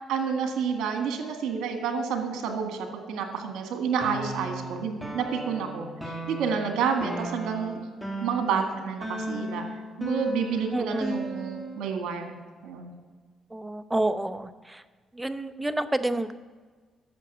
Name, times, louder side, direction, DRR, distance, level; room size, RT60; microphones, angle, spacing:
voice 1, 0.1-7.8 8.2-9.6 10.0-12.3 12.6-12.9, right 6 dB, 85° right, 4 dB, 1.8 m, -29 dB
sound 1, 4.0-11.9, right 1 dB, 5° left, 2.1 m, -36 dB
voice 2, 10.7-11.2 13.5-14.5 15.2-16.3, right 1 dB, 10° right, 12 dB, 0.7 m, -28 dB
12.0 x 7.3 x 7.1 m, 1.4 s
cardioid pair, 90°, 0 cm